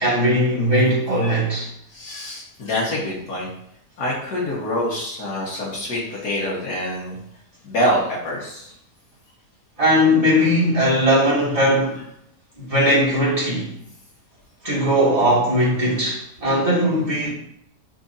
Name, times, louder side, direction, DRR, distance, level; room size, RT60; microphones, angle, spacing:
voice 1, 0.0-1.7 9.8-12.0 12.6-13.7 14.6-17.3, equal, 20° right, 2.5 m, -19 dB
voice 2, 1.9-3.5 4.0-7.2 7.6-8.7 17.2-17.3, equal, 85° left, 2.1 m, -26 dB
9.1 x 4.2 x 2.7 m
omnidirectional pair, 1.6 m